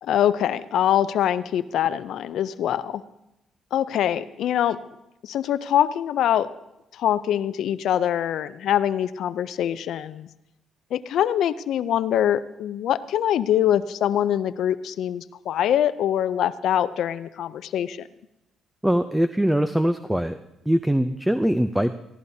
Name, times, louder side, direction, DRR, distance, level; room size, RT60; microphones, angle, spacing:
voice 1, 0.0-3.0 3.7-4.8 5.2-6.5 6.9-10.3 10.9-18.1, left 10 dB, 75° left, 15 dB, 0.4 m, -24 dB
voice 2, 18.8-20.4 20.7-21.9, right 1 dB, 5° right, 10 dB, 0.5 m, -22 dB
18.0 x 15.5 x 2.7 m, 0.89 s
cardioid pair, 90°, 0 cm